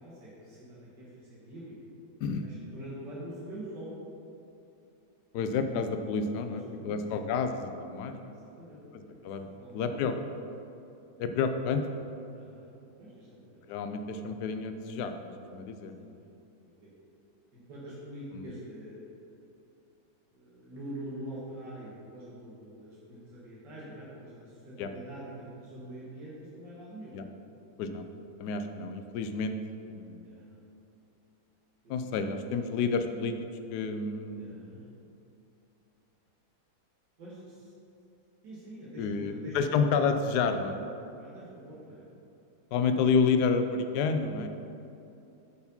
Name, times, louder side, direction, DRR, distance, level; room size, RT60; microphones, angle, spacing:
voice 1, 0.0-1.8 2.4-3.9 6.5-7.2 8.2-10.1 12.3-12.7 13.0-13.6 15.8-16.3 16.8-16.9 17.5-19.4 20.3-27.1 30.2-30.7 31.8-32.0 34.4-34.9 37.2-37.7 38.4-39.8 40.9-42.0, right 1 dB, 85° right, -8 dB, 2.1 m, -45 dB
voice 2, 5.3-8.3 9.2-10.2 11.2-12.0 13.7-15.1 15.5-16.1 18.3-18.4 24.8-24.9 27.1-27.2 27.8-28.0 28.4-29.6 29.9-30.3 31.9-33.4 33.7-34.7 39.0-40.8 42.7-44.5, left 5 dB, 75° left, 7 dB, 1.1 m, -30 dB
6.9 x 4.6 x 5.3 m, 2.7 s
omnidirectional pair, 1.8 m